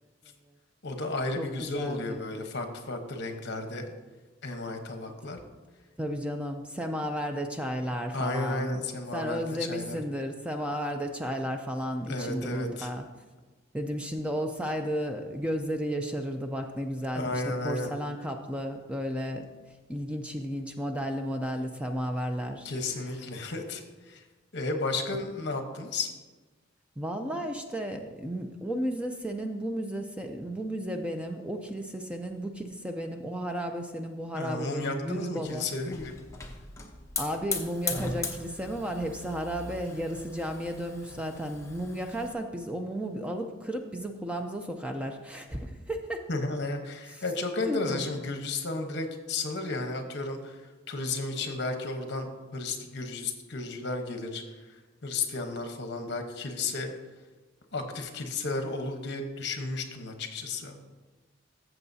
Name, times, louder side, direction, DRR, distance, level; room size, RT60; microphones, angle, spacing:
voice 1, 0.8-3.8 4.4-5.4 8.1-10.0 12.1-12.9 17.1-17.9 22.6-24.2 24.5-26.1 34.3-36.1 46.3-56.9 57.7-60.8, left 3 dB, 60° left, 5 dB, 1.0 m, -33 dB
voice 2, 1.4-2.2 6.0-8.8 9.1-13.0 13.7-19.5 19.9-22.7 27.0-35.7 37.2-46.2 47.1-47.2 47.6-48.0, equal, 5° right, 4 dB, 0.4 m, -33 dB
Hiss / Fire, 35.5-42.3, left 3 dB, 15° left, 0.8 m, -38 dB
14.0 x 7.0 x 2.7 m, 1.3 s
head